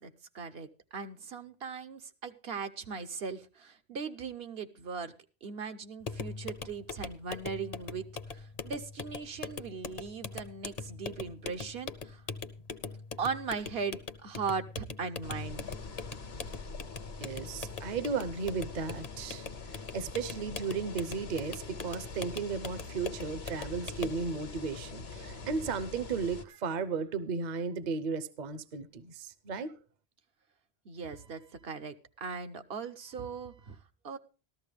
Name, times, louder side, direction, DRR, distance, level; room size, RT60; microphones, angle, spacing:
voice 1, 0.0-5.1 5.4-12.2 13.2-15.6 25.3-25.5 30.8-33.8 34.0-34.2, right 5 dB, 70° right, 1.1 m, -39 dB
sound 1, 6.0-24.3, left 5 dB, 45° left, 0.7 m, -42 dB
sound 2, 15.2-26.4, left 4 dB, 75° left, 1.4 m, -44 dB
voice 2, 17.2-29.8, right 5 dB, 50° right, 0.8 m, -35 dB
13.5 x 13.5 x 3.4 m
omnidirectional pair, 1.0 m